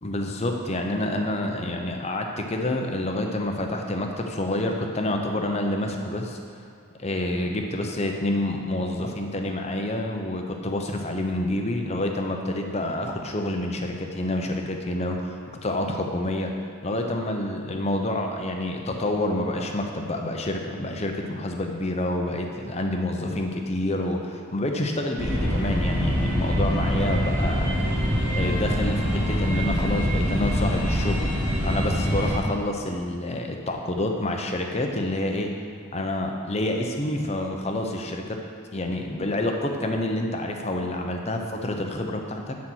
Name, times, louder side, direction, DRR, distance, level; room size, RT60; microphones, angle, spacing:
voice 1, 0.0-6.4 7.0-16.5 16.8-27.9 28.3-31.2 31.6-35.5 35.9-38.4 38.7-42.6, left 1 dB, 30° left, 3 dB, 0.7 m, -28 dB
sound 1, 25.2-32.4, equal, 10° right, 1.9 m, -24 dB
11.5 x 4.3 x 6.2 m, 2.4 s
head